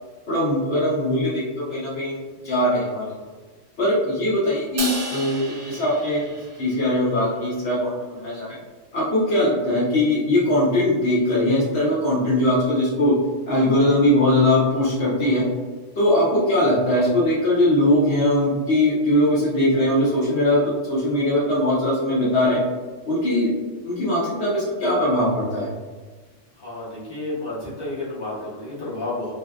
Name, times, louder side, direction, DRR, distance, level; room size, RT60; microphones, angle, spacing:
voice 1, 0.3-2.2 2.4-3.1 3.8-6.2 6.6-8.6 8.9-13.1 13.5-15.4 16.0-22.6 23.1-23.5 23.8-25.7, left 1 dB, 60° left, -7 dB, 0.8 m, -20 dB
Crash cymbal, 4.8-7.2, right 3 dB, 60° right, 0.6 m, -33 dB
voice 2, 26.6-29.3, left 2 dB, 25° left, -8 dB, 0.7 m, -31 dB
2.5 x 2.3 x 2.3 m, 1.3 s
omnidirectional pair, 1.3 m